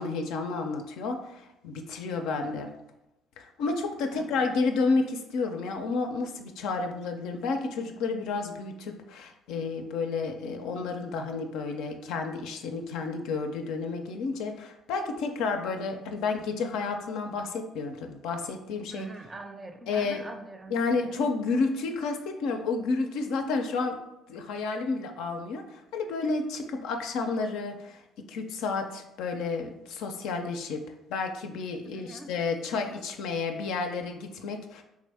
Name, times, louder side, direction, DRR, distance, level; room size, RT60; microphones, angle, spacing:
voice 1, 0.0-2.7 3.4-19.1 19.9-20.2 20.7-24.0 24.3-25.6 25.9-28.0 28.3-30.8 31.1-34.8, left 4 dB, 75° left, 4 dB, 0.4 m, -31 dB
voice 2, 4.0-4.6 18.9-21.2 31.9-32.3, right 2 dB, 30° right, 7 dB, 0.5 m, -44 dB
3.6 x 2.6 x 3.3 m, 0.92 s
hypercardioid pair, 55°, 0 cm